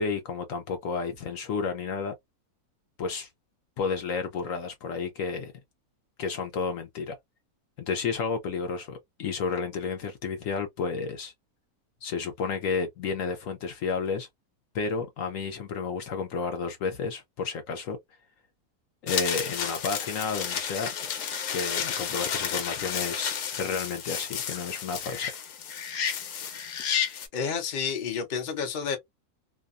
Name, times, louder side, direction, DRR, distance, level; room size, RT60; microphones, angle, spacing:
voice 1, 0.0-2.1 3.0-3.3 3.8-5.5 6.2-7.2 7.8-11.3 12.0-14.3 14.7-18.0 19.0-20.9 21.5-25.3, left 5 dB, 65° left, 1.0 m, -31 dB
sound 1, 19.1-27.3, left 8 dB, 85° left, 1.3 m, -31 dB
voice 2, 27.3-29.0, left 6 dB, 45° left, 0.7 m, -30 dB
2.7 x 2.3 x 2.4 m
omnidirectional pair, 1.6 m